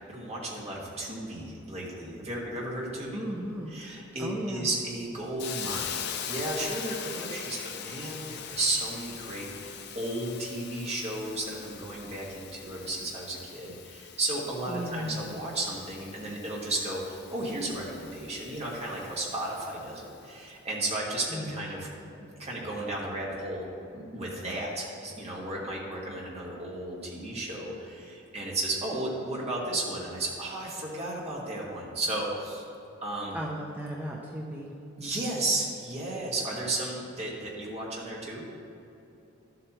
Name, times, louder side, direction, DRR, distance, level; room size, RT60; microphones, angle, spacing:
voice 1, 0.1-3.2 3.7-21.9 22.4-23.7 23.9-32.6 33.0-33.4 35.0-38.4, right 2 dB, 30° right, -4 dB, 1.7 m, -34 dB
voice 2, 3.1-3.7 4.2-4.7 14.7-15.3 21.3-21.8 33.3-34.7, equal, 10° right, -3 dB, 0.6 m, -36 dB
Hiss, 5.4-20.2, left 8 dB, 50° left, 0.5 m, -42 dB
12.5 x 7.7 x 3.0 m, 2.8 s
head